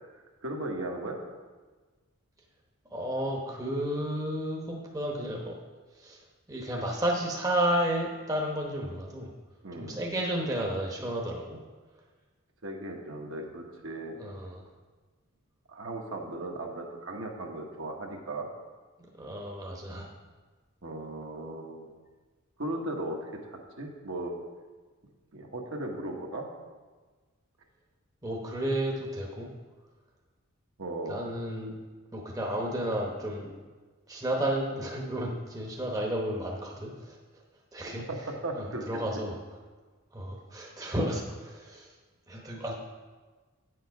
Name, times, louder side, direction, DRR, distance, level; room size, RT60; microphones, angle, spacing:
voice 1, 0.4-1.2 9.6-10.0 12.6-14.2 15.7-18.5 20.8-21.9 22.6-24.3 25.3-26.5 30.8-31.2 38.1-38.8, right 1 dB, 65° right, 1 dB, 1.2 m, -37 dB
voice 2, 2.9-5.6 6.0-6.2 6.5-9.3 9.7-11.6 14.2-14.6 19.2-20.1 28.2-29.5 31.1-31.7 32.1-33.5 34.1-37.2 37.7-38.0 38.5-39.4 40.1-41.9 42.3-42.7, right 1 dB, 15° right, -1 dB, 0.9 m, -32 dB
8.9 x 6.6 x 4.7 m, 1.4 s
head